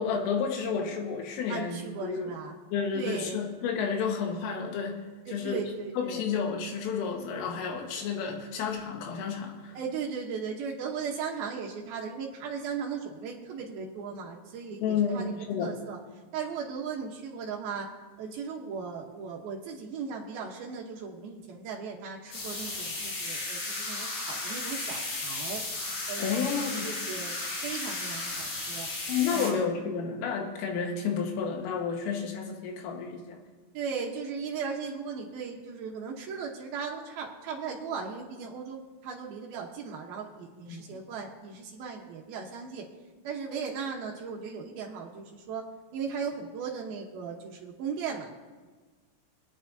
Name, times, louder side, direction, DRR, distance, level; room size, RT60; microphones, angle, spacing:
voice 1, 0.0-2.3 2.7-5.6 6.0-9.8 14.8-15.7 26.2-26.9 29.1-33.4 40.7-41.0, left 6 dB, 80° left, 2 dB, 4.0 m, -31 dB
voice 2, 1.5-2.6 2.9-3.4 5.3-6.3 9.7-16.0 16.3-17.9 18.2-25.6 26.1-26.3 26.7-28.9 29.3-29.6 33.7-42.9 43.2-45.7 45.9-48.3, right 6 dB, 80° right, -1 dB, 2.1 m, -37 dB
sound 1, 22.3-29.5, left 2 dB, 60° left, 5.7 m, -35 dB
26.5 x 9.3 x 2.7 m, 1.4 s
omnidirectional pair, 5.9 m